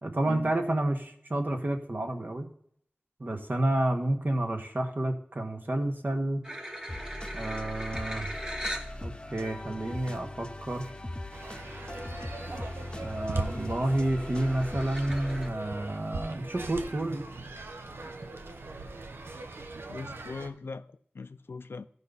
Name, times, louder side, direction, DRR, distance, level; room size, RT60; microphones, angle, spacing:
voice 1, 0.0-2.5 3.2-6.4 7.3-8.3 9.0-10.9 12.9-17.2, right 1 dB, 55° right, 1.6 m, -30 dB
sound 1, 6.4-8.9 9.6-9.7 11.1-11.2 11.5-11.9 12.3-12.8 13.2-15.5, equal, 20° right, 1.4 m, -40 dB
sound 2, 6.9-15.5, left 1 dB, 25° left, 0.8 m, -40 dB
sound 3, 11.3-20.5, right 3 dB, 85° right, 0.8 m, -40 dB
voice 2, 19.9-21.9, left 4 dB, 85° left, 0.5 m, -40 dB
14.5 x 5.4 x 4.1 m
wide cardioid pair, 40°, 4 cm